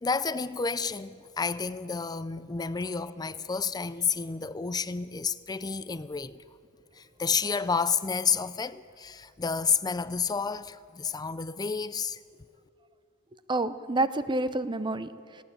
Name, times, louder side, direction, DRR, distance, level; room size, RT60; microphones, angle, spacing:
voice 1, 0.0-6.4 6.9-12.2, left 5 dB, 20° left, 0.4 m, -30 dB
voice 2, 13.5-15.4, right 2 dB, 20° right, 0.7 m, -29 dB
19.5 x 17.0 x 8.7 m
head